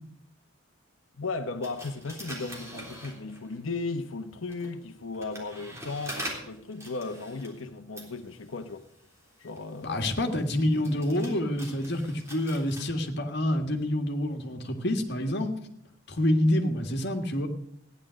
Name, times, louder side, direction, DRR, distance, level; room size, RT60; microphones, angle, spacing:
voice 1, 1.2-8.8 9.4-10.2, left 3 dB, 85° left, 0.9 m, -36 dB
sound 1, 1.6-3.7 4.3-12.8, right 1 dB, 15° right, 3.5 m, -44 dB
voice 2, 9.8-15.5 16.1-17.5, left 1 dB, 60° left, 1.8 m, -27 dB
15.5 x 10.5 x 6.3 m
head